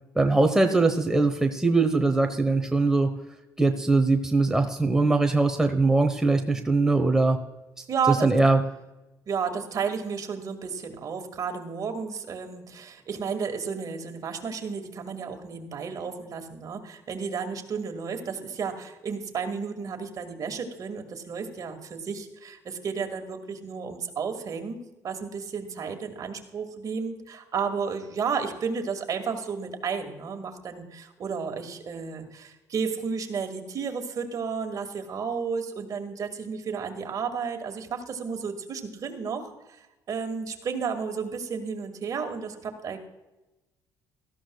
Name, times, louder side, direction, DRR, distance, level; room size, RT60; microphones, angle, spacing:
voice 1, 0.1-3.1 3.6-7.4 7.8-8.6, right 3 dB, 5° right, 4 dB, 1.1 m, -22 dB
voice 2, 7.9-8.3 9.3-39.5 40.1-43.0, right 6 dB, 50° right, 5 dB, 2.0 m, -32 dB
17.5 x 14.0 x 2.3 m, 1.0 s
supercardioid pair, 85°, 8 cm